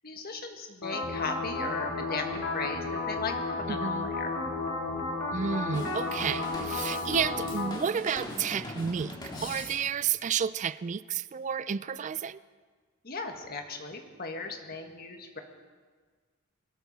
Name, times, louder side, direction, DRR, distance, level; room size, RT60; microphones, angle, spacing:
voice 1, 0.0-4.3 13.0-15.4, left 4 dB, 45° left, 4 dB, 1.5 m, -37 dB
sound 1, 0.8-7.7, left 3 dB, 70° left, 2.4 m, -33 dB
voice 2, 3.7-4.1 5.3-12.4, right 7 dB, 35° right, 17 dB, 0.3 m, -31 dB
Drum kit / Drum, 5.7-10.1, left 1 dB, 20° left, 2.0 m, -41 dB
21.5 x 13.0 x 4.1 m, 1.5 s
head